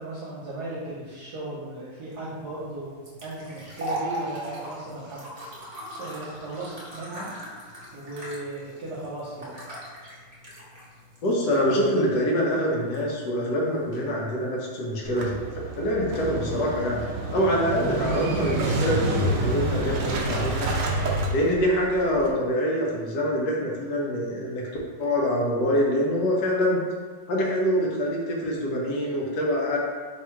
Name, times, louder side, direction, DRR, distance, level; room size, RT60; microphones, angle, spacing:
voice 1, 0.0-5.5 6.0-7.3 7.9-9.6, right 2 dB, 65° right, -7 dB, 1.2 m, -36 dB
sound 1, 2.1-15.5, right 1 dB, 35° right, 0.6 m, -40 dB
voice 2, 11.2-15.4 15.8-20.9 21.3-24.6 25.0-26.8 27.3-29.8, equal, 65° left, -3 dB, 1.4 m, -25 dB
Motorcycle / Engine starting, 15.1-22.3, right 2 dB, 85° right, 0.7 m, -28 dB
3.6 x 2.7 x 4.4 m, 1.5 s
omnidirectional pair, 2.1 m